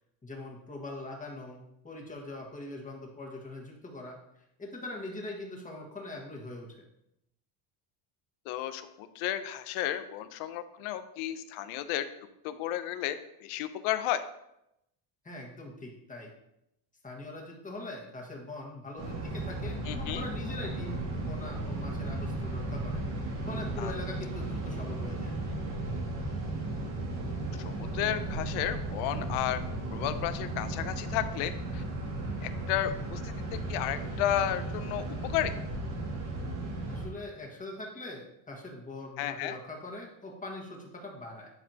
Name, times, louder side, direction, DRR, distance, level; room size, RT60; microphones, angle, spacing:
voice 1, 0.2-4.2 4.6-6.8 15.2-16.3 17.0-23.0 23.5-25.4 36.9-41.5, left 2 dB, 15° left, 0 dB, 1.6 m, -42 dB
voice 2, 8.5-12.0 12.4-14.2 19.9-20.3 23.8-23.9 27.5-29.6 29.9-31.8 32.4-33.3 33.7-35.5 39.2-39.6, left 12 dB, 75° left, 11 dB, 0.8 m, -33 dB
sound 1, 19.0-37.1, right 2 dB, 85° right, 2.2 m, -35 dB
10.5 x 4.1 x 2.9 m, 0.83 s
cardioid pair, 120°, 49 cm